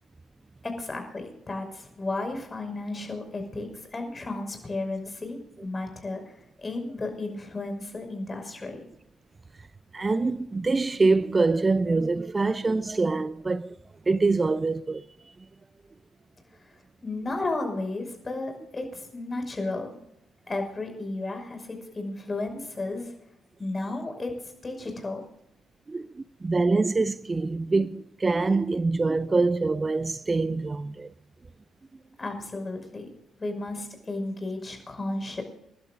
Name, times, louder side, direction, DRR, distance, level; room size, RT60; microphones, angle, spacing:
voice 1, 0.6-8.8 16.6-16.7 17.0-19.9 20.5-23.1 23.6-25.2 32.2-33.1 33.4-35.4, left 2 dB, 30° left, 5.7 m, -33 dB
voice 2, 9.9-13.8 14.1-15.0 25.9-31.1, right 3 dB, 30° right, 0.6 m, -25 dB
29.0 x 11.5 x 2.6 m
hypercardioid pair, 45°, 0 cm